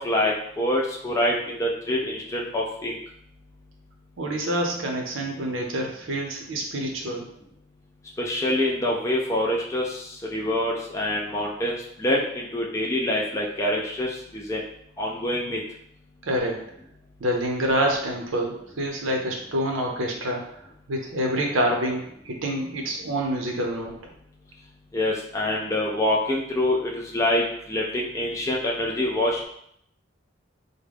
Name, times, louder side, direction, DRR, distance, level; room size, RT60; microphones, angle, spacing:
voice 1, 0.0-3.0 8.2-10.0 10.3-14.6 15.0-15.6 24.9-29.5, left 1 dB, 15° left, -3 dB, 0.4 m, -25 dB
voice 2, 4.2-7.2 16.2-16.6 17.2-20.5 20.9-24.0, right 1 dB, 80° right, 1 dB, 0.7 m, -27 dB
3.6 x 2.1 x 3.4 m, 0.71 s
head